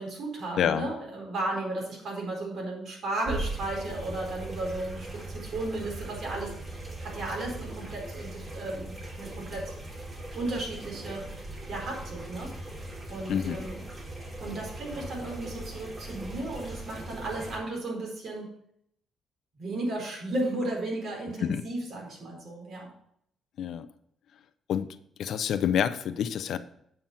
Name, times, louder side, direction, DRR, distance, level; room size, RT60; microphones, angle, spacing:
voice 1, 0.0-6.5 7.0-9.8 10.3-11.2 11.7-12.5 13.1-13.8 14.4-18.5 19.6-22.9, right 2 dB, 65° right, -1 dB, 4.5 m, -34 dB
voice 2, 0.6-0.9 13.3-13.7 21.4-21.6 23.6-23.9 24.7-24.9 25.2-26.6, left 9 dB, 70° left, 13 dB, 0.6 m, -27 dB
sound 1, 3.2-17.6, right 2 dB, 30° right, 2.5 m, -39 dB
9.0 x 5.9 x 5.6 m, 0.69 s
cardioid pair, 90°, 0 cm